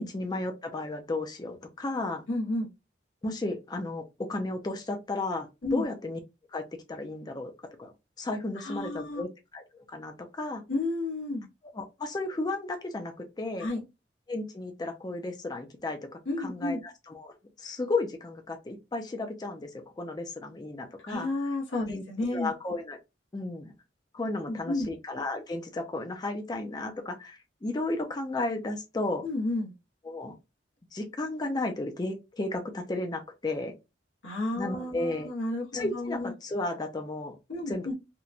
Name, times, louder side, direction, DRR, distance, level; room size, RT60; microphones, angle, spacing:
voice 1, 0.0-2.2 3.2-4.0 4.3-6.2 6.5-6.6 6.9-7.5 7.8-7.9 8.2-10.6 11.7-13.7 14.3-16.0 16.4-19.7 20.0-21.3 21.9-22.0 22.3-23.0 23.3-23.7 24.1-29.2 30.0-30.3 30.9-33.7 34.6-35.3 35.7-37.4 37.7-37.9, left 2 dB, 20° left, 0.4 m, -33 dB
voice 2, 2.3-2.7 5.6-5.8 8.6-9.2 10.7-11.4 13.6-13.8 16.3-16.8 21.0-22.5 24.5-24.9 29.2-29.7 34.2-36.3 37.5-37.9, left 2 dB, 90° left, 1.1 m, -31 dB
3.0 x 2.2 x 2.4 m
head